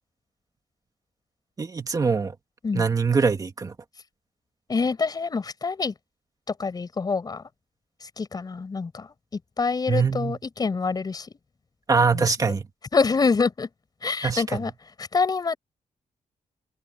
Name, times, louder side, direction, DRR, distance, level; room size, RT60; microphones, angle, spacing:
voice 1, 1.6-2.3 2.7-3.7 9.9-10.4 11.9-12.7 14.2-14.6, right 5 dB, 25° right, 2.1 m, -23 dB
voice 2, 4.7-5.9 6.5-7.4 8.0-9.1 9.6-11.3 12.1-12.3 12.9-13.7 14.0-14.7 15.0-15.6, left 4 dB, 30° left, 5.4 m, -26 dB
wide cardioid pair, 165°, 13 cm